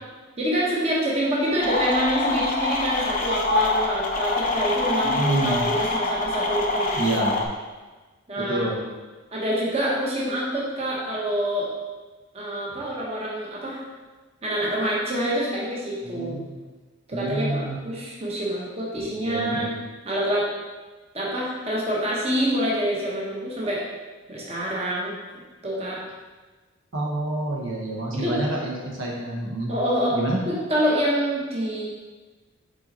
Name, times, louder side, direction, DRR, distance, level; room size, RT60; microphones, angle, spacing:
voice 1, 0.4-7.0 8.3-8.7 9.3-11.7 12.3-13.8 14.4-16.4 17.1-19.7 20.0-20.5 21.1-23.8 24.3-25.1 25.6-26.0 28.2-28.4 29.7-30.2 30.5-31.8, equal, 30° right, -5 dB, 1.1 m, -26 dB
sound 1, 1.6-7.5, left 2 dB, 35° left, 0.7 m, -25 dB
voice 2, 5.0-5.6 7.0-7.4 8.4-8.8 16.0-16.5 17.1-17.8 19.0-19.6 26.9-29.7 30.1-30.4, right 2 dB, 65° right, -3 dB, 1.1 m, -28 dB
5.3 x 4.3 x 4.2 m, 1.3 s
head